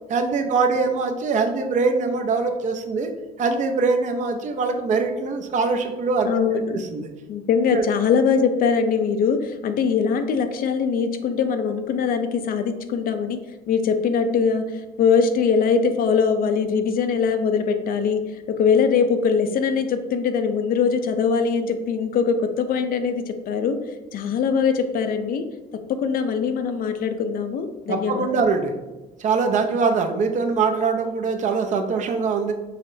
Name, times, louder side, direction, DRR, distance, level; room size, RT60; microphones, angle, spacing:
voice 1, 0.1-3.1 3.4-6.3 6.7-7.1 7.7-7.8 27.9-28.7 29.2-32.5, right 4 dB, 45° right, 5 dB, 0.5 m, -22 dB
voice 2, 6.2-6.8 7.3-13.4 13.7-23.8 24.1-25.4 25.9-28.4, left 6 dB, 60° left, 8 dB, 0.4 m, -22 dB
5.6 x 2.0 x 2.6 m, 1.1 s
cardioid pair, 110°, 17 cm